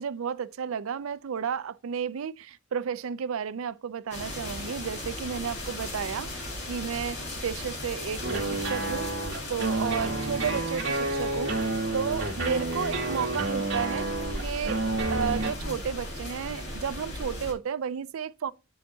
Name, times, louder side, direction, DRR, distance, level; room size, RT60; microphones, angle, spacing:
voice 1, 0.0-9.1 9.5-14.1 14.4-14.8 15.1-18.5, right 7 dB, 80° right, 0.4 m, -32 dB
sound 1, 4.1-17.5, left 1 dB, 55° left, 2.0 m, -37 dB
sound 2, 8.2-15.5, right 2 dB, 60° right, 1.9 m, -30 dB
9.2 x 3.7 x 2.8 m
head